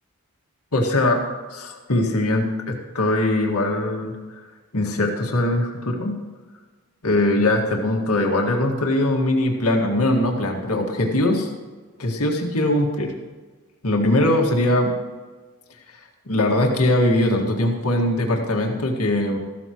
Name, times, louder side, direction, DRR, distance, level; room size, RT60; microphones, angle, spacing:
voice 1, 0.7-1.2 1.5-4.1 4.7-6.2 7.0-11.5 12.0-13.1 13.8-14.9 16.3-19.4, left 1 dB, 85° left, 1 dB, 1.9 m, -21 dB
14.5 x 13.5 x 3.1 m, 1.4 s
head